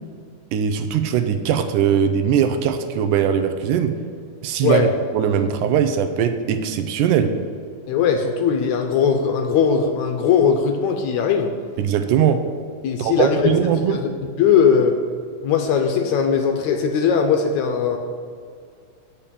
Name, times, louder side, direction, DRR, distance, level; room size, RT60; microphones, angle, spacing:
voice 1, 0.5-3.9 4.4-4.8 5.1-7.4 11.8-12.4 13.0-14.1, right 8 dB, 80° right, 7 dB, 2.1 m, -20 dB
voice 2, 4.6-4.9 7.9-11.5 12.8-13.5 13.9-14.1 14.4-15.0 15.4-18.0, left 6 dB, 75° left, 4 dB, 1.8 m, -19 dB
8.7 x 5.7 x 6.8 m, 2.2 s
omnidirectional pair, 3.7 m